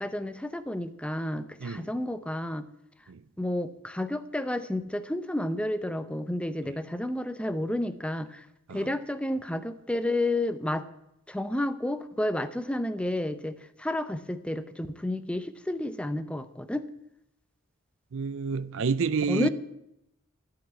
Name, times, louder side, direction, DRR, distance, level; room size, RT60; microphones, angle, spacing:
voice 1, 0.0-2.7 3.4-10.9 11.3-16.9 19.3-19.5, left 1 dB, 5° left, 0.6 m, -31 dB
voice 2, 1.6-1.9 3.1-3.2 8.7-8.9 18.1-19.5, right 5 dB, 65° right, 0.5 m, -29 dB
13.5 x 5.8 x 9.3 m
head